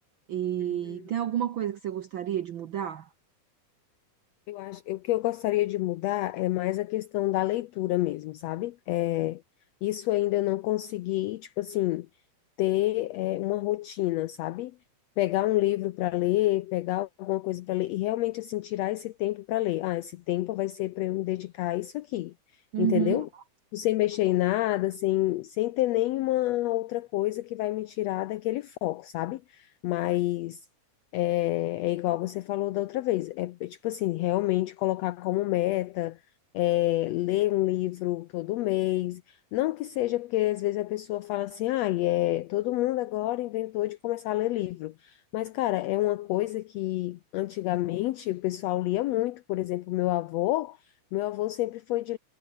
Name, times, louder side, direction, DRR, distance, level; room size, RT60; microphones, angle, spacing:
voice 1, 0.3-3.1 22.7-23.2, right 10 dB, 80° right, 1.1 m, -30 dB
voice 2, 4.5-9.4 9.8-12.1 12.6-14.7 15.2-22.3 22.8-23.3 23.7-30.6 31.1-36.2 36.5-52.2, left 16 dB, 80° left, 1.5 m, -28 dB
omnidirectional pair, 3.6 m